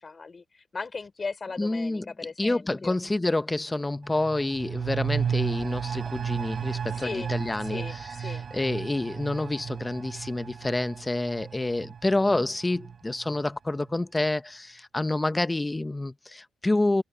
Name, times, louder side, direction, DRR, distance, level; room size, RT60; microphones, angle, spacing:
voice 1, 0.0-3.0 6.9-7.3 7.6-8.5, left 4 dB, 30° left, 3.5 m, -37 dB
voice 2, 1.6-2.1 2.4-17.0, left 2 dB, 15° left, 1.0 m, -28 dB
sound 1, 4.0-13.4 13.8-13.9, right 7 dB, 45° right, 1.4 m, -33 dB
cardioid pair, 90°, 0 cm